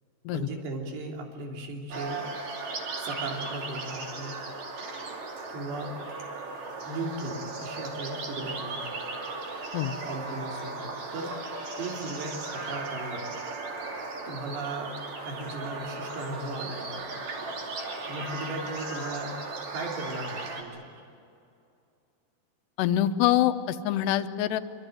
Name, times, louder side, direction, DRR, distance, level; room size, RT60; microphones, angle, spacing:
voice 1, 0.3-2.3 3.0-4.5 5.5-6.0 6.9-8.9 10.0-11.4 11.8-13.3 14.3-15.0 15.2-17.2 18.1-19.4 19.7-20.9, right 2 dB, 90° right, 1 dB, 5.4 m, -37 dB
sound 1, 1.9-20.6, right 3 dB, 45° right, 3.7 m, -37 dB
voice 2, 22.8-24.6, left 12 dB, 85° left, 10 dB, 3.0 m, -25 dB
25.5 x 25.0 x 9.2 m, 2.5 s
omnidirectional pair, 4.8 m